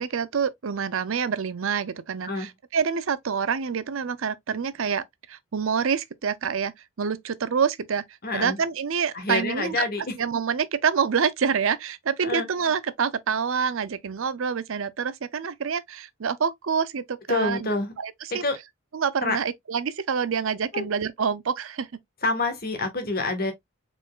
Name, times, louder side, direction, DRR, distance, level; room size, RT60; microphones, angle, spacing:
voice 1, 0.0-6.7 7.0-8.0 8.3-9.8 10.2-17.7 18.0-18.4 18.9-21.9, right 6 dB, 65° right, 0.5 m, -27 dB
voice 2, 8.2-8.6 9.1-10.2 12.2-12.5 17.3-17.9 18.3-18.6 19.2-19.4 20.7-20.9 22.2-23.5, left 3 dB, 45° left, 1.6 m, -27 dB
4.5 x 4.4 x 2.4 m
head